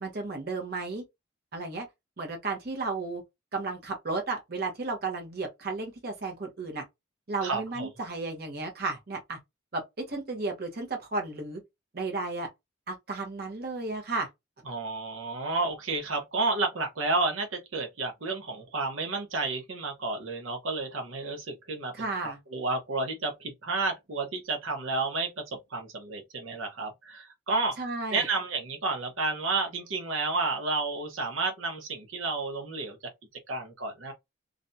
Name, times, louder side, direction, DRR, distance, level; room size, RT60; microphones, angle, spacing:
voice 1, 0.0-1.0 1.5-1.9 2.2-3.2 3.5-6.8 7.3-9.4 9.7-9.8 10.1-11.6 11.9-12.5 12.9-14.3 21.9-22.4 27.8-28.3, right 3 dB, 50° right, 0.7 m, -33 dB
voice 2, 7.4-7.9 14.7-27.7 28.1-33.0 33.5-34.1, right 3 dB, 85° right, 0.8 m, -31 dB
2.5 x 2.2 x 2.6 m
head